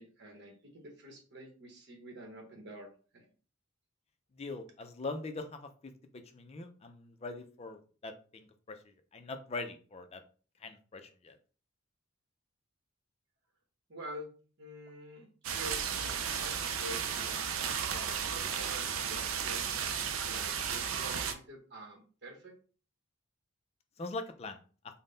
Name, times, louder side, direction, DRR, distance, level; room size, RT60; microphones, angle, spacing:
voice 1, 0.0-3.3 13.9-17.6 17.9-19.8 20.3-22.5, right 1 dB, 55° right, 1 dB, 0.9 m, -48 dB
voice 2, 4.4-8.8 9.1-10.2 10.6-11.4 24.0-24.6, left 3 dB, 30° left, 7 dB, 0.4 m, -42 dB
sound 1, 15.4-21.3, right 7 dB, 80° right, 0.5 m, -34 dB
3.7 x 2.1 x 3.8 m, 0.39 s
head